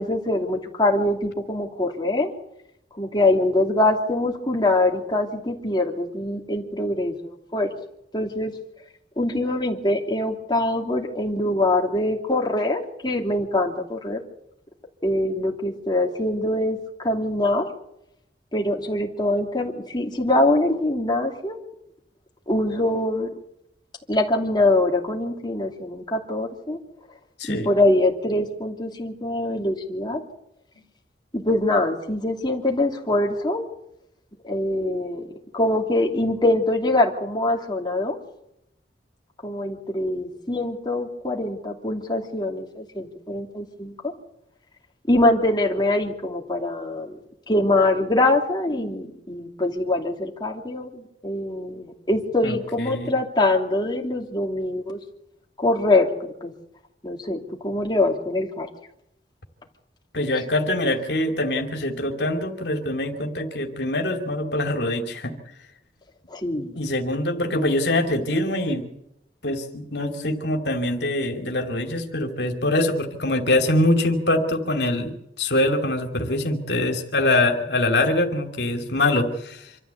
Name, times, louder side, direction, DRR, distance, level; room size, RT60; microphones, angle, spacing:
voice 1, 0.0-2.3 3.0-7.7 8.1-8.5 9.2-14.2 15.0-17.7 18.5-21.6 22.5-23.3 24.1-26.8 27.5-30.2 31.3-33.7 34.4-35.3 35.5-38.2 39.4-44.1 45.1-47.2 47.5-55.0 55.6-56.5 57.0-58.7 60.3-60.4 66.3-66.7, left 2 dB, 25° left, 1 dB, 2.9 m, -23 dB
voice 2, 52.4-53.1 60.1-65.3 66.7-68.9 69.4-79.6, left 1 dB, 70° left, 5 dB, 2.7 m, -24 dB
26.0 x 13.5 x 8.2 m, 0.80 s
head